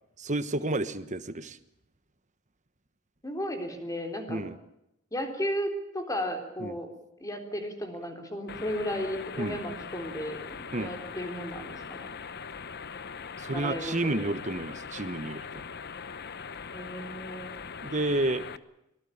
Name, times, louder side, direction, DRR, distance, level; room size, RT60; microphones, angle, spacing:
voice 1, 0.2-1.6 4.3-4.6 6.6-6.8 9.4-9.6 10.7-10.9 13.4-15.7 17.8-18.4, right 2 dB, 35° right, 12 dB, 1.3 m, -30 dB
voice 2, 3.2-4.4 5.1-6.9 7.2-12.1 13.5-14.3 16.7-17.6, equal, 15° left, 5 dB, 3.8 m, -34 dB
sound 1, 8.5-18.6, left 6 dB, 50° left, 1.0 m, -41 dB
24.5 x 18.5 x 8.7 m, 0.84 s
head